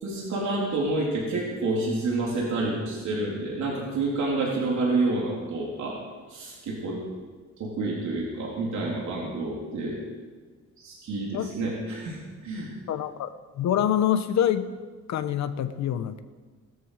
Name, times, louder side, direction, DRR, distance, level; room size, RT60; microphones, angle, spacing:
voice 1, 0.0-6.0 6.3-7.0 7.6-10.0 10.8-12.2 12.4-12.7, right 2 dB, 70° right, -4 dB, 3.6 m, -28 dB
voice 2, 12.9-13.3 13.6-14.7 15.1-16.2, left 10 dB, 65° left, 11 dB, 0.9 m, -25 dB
19.5 x 13.5 x 5.0 m, 1.4 s
cardioid pair, 165°, 30 cm